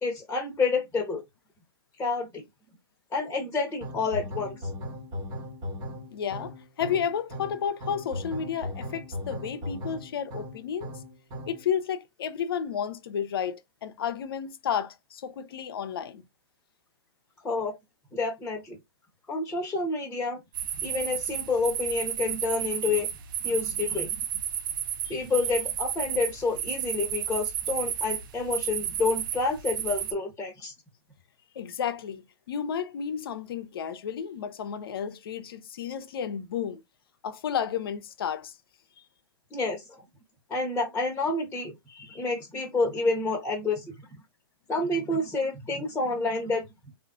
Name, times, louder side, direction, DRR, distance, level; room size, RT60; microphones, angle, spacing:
voice 1, 0.0-1.2 2.0-2.4 3.1-4.6 17.4-17.8 18.1-18.8 19.3-20.4 20.8-23.1 23.4-24.1 25.1-30.7 39.5-39.8 40.5-43.9 44.7-46.7, left 3 dB, 15° left, 1.1 m, -29 dB
sound 1, 3.8-11.7, left 1 dB, 35° right, 1.3 m, -37 dB
voice 2, 6.1-11.0 11.5-16.2 25.0-25.2 31.5-36.8 37.2-38.5, left 8 dB, 70° left, 0.6 m, -32 dB
sound 2, 20.5-30.1, right 9 dB, 60° right, 0.6 m, -32 dB
3.8 x 2.4 x 2.4 m
hypercardioid pair, 110°, 13 cm